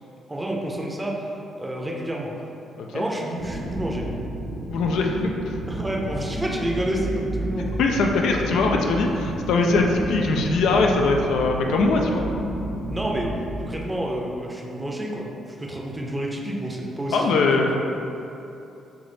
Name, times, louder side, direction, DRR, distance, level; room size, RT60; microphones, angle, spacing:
voice 1, 0.3-2.3 2.9-4.1 5.7-7.8 12.9-18.0, right 1 dB, 15° right, -2 dB, 0.6 m, -29 dB
sound 1, 3.4-13.7, right 1 dB, 65° right, 0.6 m, -31 dB
voice 2, 4.7-5.5 7.8-12.2 17.1-17.7, left 3 dB, 80° left, 1 dB, 0.4 m, -21 dB
3.4 x 2.8 x 4.0 m, 2.9 s
cardioid pair, 90°, 0 cm